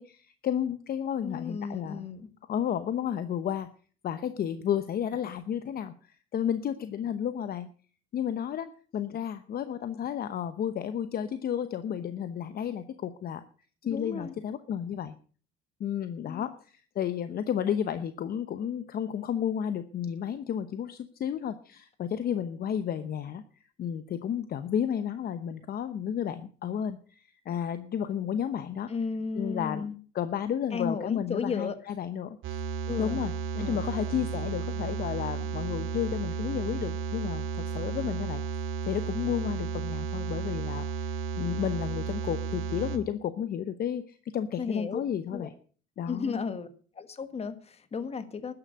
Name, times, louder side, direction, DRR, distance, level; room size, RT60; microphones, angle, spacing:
voice 1, 0.0-2.1 2.5-3.7 4.0-7.7 8.1-13.4 13.8-15.2 15.8-23.4 23.8-28.9 29.4-29.9 30.1-32.6 33.0-33.3 33.6-38.4 38.9-45.5 46.0-46.4, left 9 dB, 45° left, 11 dB, 0.9 m, -32 dB
voice 2, 1.2-2.3 13.8-14.3 16.3-16.5 28.9-30.0 30.7-31.8 32.9-33.2 33.5-33.8 44.6-45.0 45.3-45.5 46.1-46.7 46.9-48.5, left 5 dB, 30° left, 11 dB, 1.6 m, -34 dB
sound 1, 32.4-43.0, right 5 dB, 70° right, 2.3 m, -33 dB
13.0 x 9.9 x 6.7 m, 0.42 s
cardioid pair, 130°, 21 cm